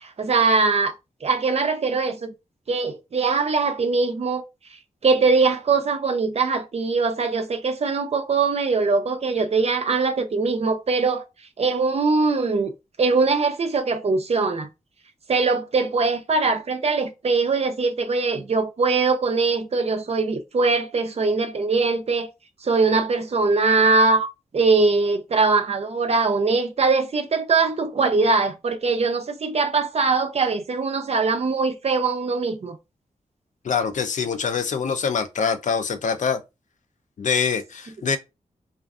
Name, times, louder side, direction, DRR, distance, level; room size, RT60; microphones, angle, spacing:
voice 1, 0.0-0.9 1.2-2.3 2.7-4.4 5.0-11.2 11.6-12.7 13.0-14.7 15.3-22.3 22.6-24.3 24.5-32.8, right 4 dB, 45° right, 0.4 m, -21 dB
voice 2, 33.6-36.4 37.2-38.2, left 6 dB, 60° left, 0.4 m, -24 dB
2.4 x 2.4 x 2.3 m
cardioid pair, 60°, 14 cm